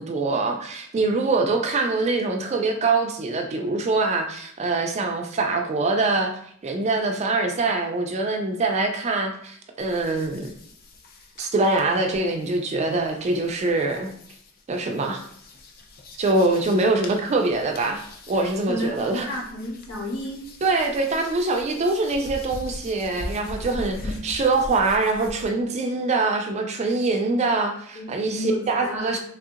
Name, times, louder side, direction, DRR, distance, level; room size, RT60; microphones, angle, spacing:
voice 1, 0.0-6.3 6.6-10.5 11.4-14.1 14.7-15.2 16.2-19.3 20.6-29.2, right 3 dB, 30° right, 4 dB, 0.3 m, -24 dB
sound 1, 9.8-25.5, left 1 dB, 45° left, 0.4 m, -41 dB
voice 2, 18.7-19.0 19.3-20.4 27.9-29.2, equal, 75° left, -3 dB, 1.1 m, -31 dB
3.3 x 2.7 x 2.4 m, 0.66 s
head